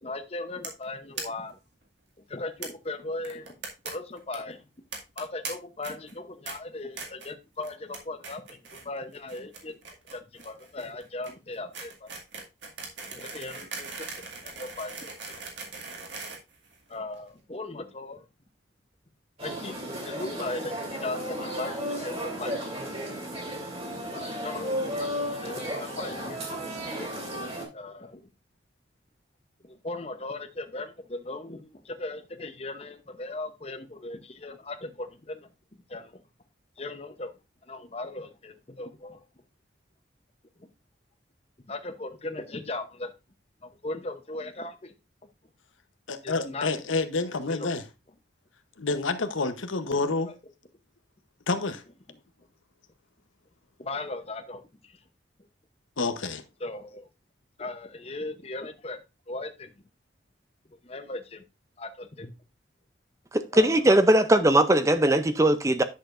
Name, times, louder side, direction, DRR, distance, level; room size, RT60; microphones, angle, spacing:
voice 1, 0.0-1.6 2.3-3.6 3.8-4.6 5.2-9.8 10.1-12.1 13.1-15.1 16.9-18.2 19.4-19.8 20.0-20.7 21.0-22.7 24.1-26.5 27.7-28.3 29.6-35.5 35.9-36.2 36.8-37.3 37.7-39.2 40.6-40.7 41.7-43.1 43.6-44.9 46.2-46.8 47.5-47.7 50.3-50.4 53.8-55.0 56.6-57.1 57.6-59.0 59.3-59.7 60.8-61.4 61.8-62.3 63.5-63.8, left 2 dB, 30° left, 0.8 m, -38 dB
sound 1, 0.6-0.8 1.2-1.3 1.5-1.6 1.8-1.9 2.6-2.7 3.2-3.9 4.2-4.4 4.9-5.5 5.8-6.1 6.5-6.6 7.0-7.3 7.6-8.0 8.2-8.8 9.1-17.2, right 4 dB, 65° right, 2.2 m, -39 dB
sound 2, 19.4-27.6, equal, 30° right, 2.8 m, -34 dB
voice 2, 46.1-47.8 48.8-50.3 51.5-51.8 56.0-56.4, left 3 dB, 85° left, 0.9 m, -28 dB
voice 3, 63.3-65.8, right 1 dB, 15° right, 0.5 m, -20 dB
10.5 x 6.6 x 2.5 m
head